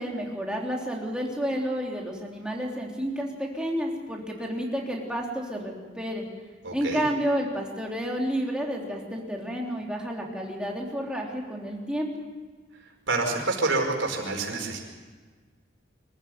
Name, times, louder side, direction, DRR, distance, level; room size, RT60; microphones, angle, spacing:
voice 1, 0.0-6.3 6.7-12.1, equal, 5° right, -2 dB, 3.6 m, -30 dB
voice 2, 6.6-7.0 13.1-14.8, right 3 dB, 85° right, 1 dB, 5.0 m, -27 dB
25.0 x 14.5 x 9.4 m, 1.4 s
head